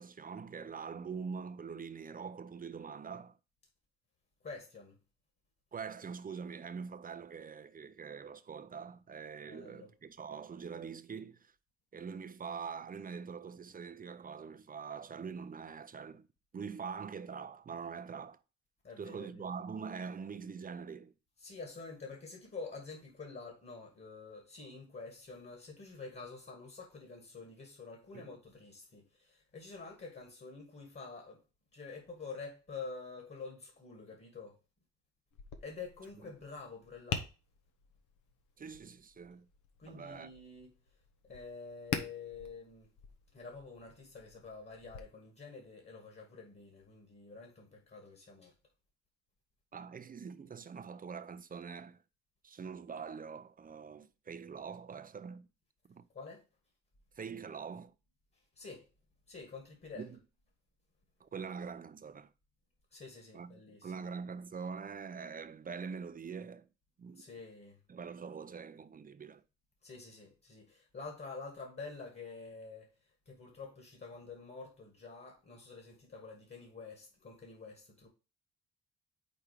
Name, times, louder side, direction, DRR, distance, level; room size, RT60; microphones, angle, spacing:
voice 1, 0.0-3.4 5.7-11.5 11.9-16.3 16.5-18.4 19.0-21.1 28.1-28.3 38.6-39.5 39.8-40.3 49.7-52.0 52.4-55.5 55.9-56.1 57.2-57.9 60.0-60.2 61.2-62.3 63.3-66.7 67.0-67.2 67.9-69.4, right 6 dB, 30° right, 0.5 m, -44 dB
voice 2, 4.4-5.0 9.4-9.9 18.8-19.5 21.4-31.4 31.7-34.6 35.6-37.3 39.8-40.7 41.2-42.9 43.3-48.5 56.1-56.5 58.3-58.9 59.3-60.1 62.9-64.0 67.1-67.8 69.8-78.1, left 4 dB, 35° left, 1.9 m, -48 dB
Tap, 35.3-45.0, left 6 dB, 80° left, 1.0 m, -45 dB
5.1 x 4.4 x 4.9 m
cardioid pair, 90°, 30 cm